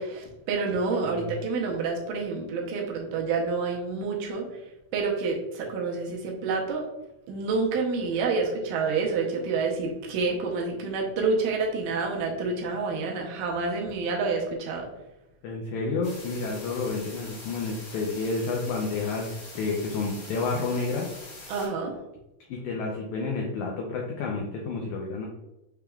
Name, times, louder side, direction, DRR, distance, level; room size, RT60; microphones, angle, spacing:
voice 1, 0.0-4.5 4.9-6.9 7.3-14.9 21.5-22.0, right 4 dB, 75° right, 0 dB, 2.1 m, -28 dB
voice 2, 15.4-21.1 22.5-25.3, left 3 dB, 80° left, -1 dB, 1.7 m, -30 dB
sound 1, 16.0-21.7, left 2 dB, 40° left, 1.7 m, -44 dB
6.0 x 3.5 x 2.2 m, 0.95 s
omnidirectional pair, 4.0 m